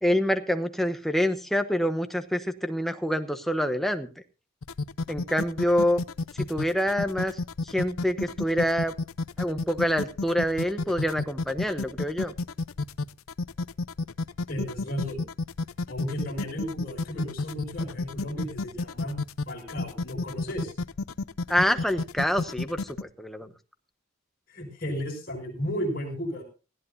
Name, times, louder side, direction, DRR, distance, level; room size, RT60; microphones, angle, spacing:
voice 1, 0.0-4.1 5.1-6.0 6.4-8.9 9.4-12.3 21.5-23.5, equal, ahead, 8 dB, 1.1 m, -26 dB
sound 1, 4.6-23.0, left 3 dB, 90° left, 0.6 m, -31 dB
voice 2, 14.5-15.2 15.9-19.2 19.5-20.7 24.5-26.4, equal, 45° left, 0 dB, 6.6 m, -34 dB
19.0 x 15.0 x 2.7 m, 0.32 s
head